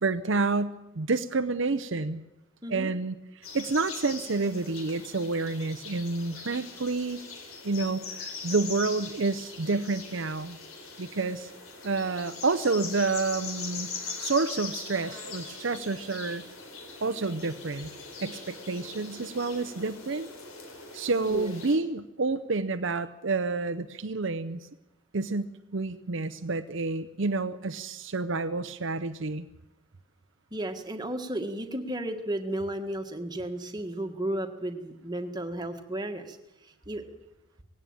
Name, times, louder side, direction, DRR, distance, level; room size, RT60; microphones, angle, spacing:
voice 1, 0.0-2.2 2.7-7.2 7.6-10.6 11.0-11.5 11.8-13.9 14.2-16.4 17.0-17.9 18.2-20.3 20.9-24.6 25.1-29.5, right 3 dB, 60° right, 10 dB, 0.7 m, -29 dB
sound 1, 3.4-21.8, left 4 dB, 80° left, 4.1 m, -41 dB
voice 2, 30.5-36.4 36.6-37.0, right 1 dB, 20° right, 5 dB, 1.6 m, -33 dB
19.0 x 16.5 x 8.9 m, 0.97 s
head